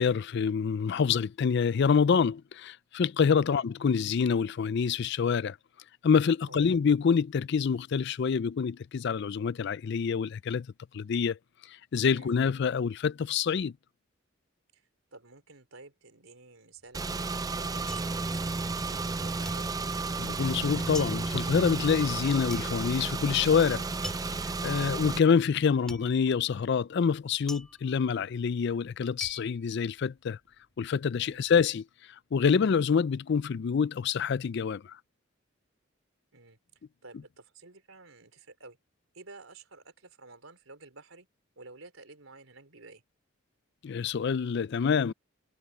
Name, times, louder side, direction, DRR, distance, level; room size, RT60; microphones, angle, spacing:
voice 1, 0.0-5.6 6.0-10.7 10.9-11.4 11.9-13.7 20.2-23.8 24.6-30.4 30.8-31.8 32.3-35.0 43.8-45.1, left 6 dB, 55° left, 0.4 m, -26 dB
voice 2, 6.5-6.8 12.1-12.3 14.7-19.7 24.7-25.0 31.1-31.5 36.3-36.6 37.0-38.8 39.1-41.3 41.6-43.0, right 3 dB, 75° right, 3.9 m, -52 dB
sound 1, 16.8-19.1 19.4-30.6 30.9-31.5, left 1 dB, 5° left, 4.7 m, -46 dB
Car / Engine, 16.9-25.2, right 3 dB, 15° right, 0.4 m, -32 dB
head